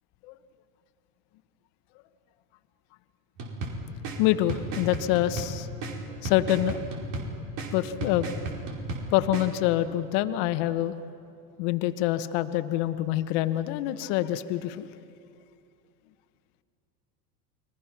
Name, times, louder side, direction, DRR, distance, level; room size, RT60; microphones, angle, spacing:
sound 1, 3.4-9.5, right 2 dB, 60° right, 5.0 m, -35 dB
voice 1, 4.2-5.7 6.2-6.8 7.7-8.3 9.1-10.9 11.6-14.9, left 14 dB, 55° left, 10 dB, 1.3 m, -26 dB
29.0 x 21.5 x 6.0 m, 2.5 s
hypercardioid pair, 100°, 49 cm